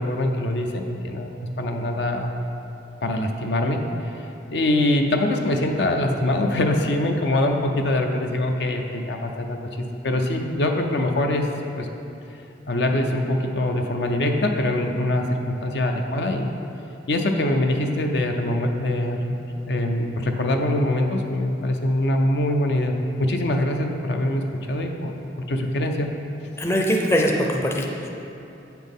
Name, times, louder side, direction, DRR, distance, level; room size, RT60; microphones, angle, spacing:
voice 1, 0.0-2.3 3.0-4.1 4.5-9.6 10.0-11.5 11.8-11.9 12.7-16.5 17.1-19.3 19.7-25.1 25.5-26.1, left 1 dB, 70° left, 3 dB, 0.5 m, -23 dB
voice 2, 26.6-28.1, equal, 15° left, 0 dB, 0.5 m, -22 dB
8.1 x 5.9 x 3.6 m, 2.8 s
head